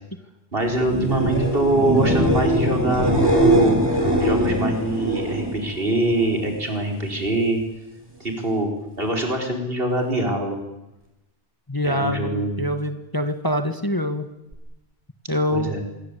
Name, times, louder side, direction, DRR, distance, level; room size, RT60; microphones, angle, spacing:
voice 1, 0.5-7.6 8.2-8.7 9.0-10.6 11.8-12.6 15.5-15.8, right 1 dB, 60° right, 3 dB, 5.1 m, -24 dB
sound 1, 0.8-6.5 6.9-7.5 14.5-14.6, right 1 dB, 20° right, 5.8 m, -22 dB
voice 2, 11.7-14.3 15.3-15.8, left 1 dB, 20° left, 8 dB, 1.8 m, -25 dB
26.0 x 22.5 x 8.5 m, 0.96 s
omnidirectional pair, 1.1 m